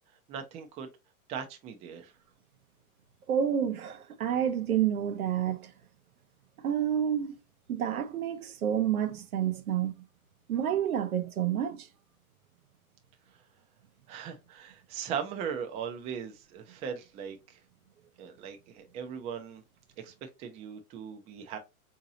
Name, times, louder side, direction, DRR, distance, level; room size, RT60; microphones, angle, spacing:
voice 1, 0.3-0.9 1.3-2.1 14.1-17.4 18.2-19.6 20.0-21.6, right 7 dB, 15° right, 0.4 m, -39 dB
voice 2, 3.3-5.7 6.6-7.4 7.7-9.9 10.5-11.9, right 9 dB, 85° right, 0.7 m, -29 dB
3.8 x 2.7 x 2.7 m
hypercardioid pair, 120°, 42 cm